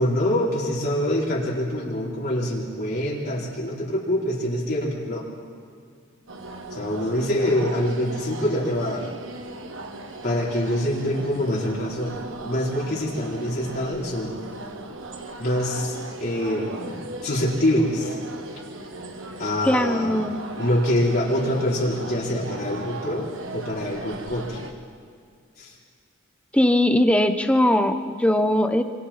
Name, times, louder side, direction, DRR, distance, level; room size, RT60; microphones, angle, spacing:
voice 1, 0.0-5.3 6.7-9.1 10.2-14.4 15.4-18.2 19.4-20.2 20.6-24.6 25.6-25.7, left 1 dB, 50° left, -5 dB, 4.1 m, -25 dB
sound 1, 6.3-24.7, right 2 dB, 75° right, 1.7 m, -37 dB
voice 2, 19.6-20.4 26.5-28.8, left 1 dB, 5° left, 7 dB, 1.1 m, -20 dB
27.0 x 26.5 x 4.3 m, 2.3 s
head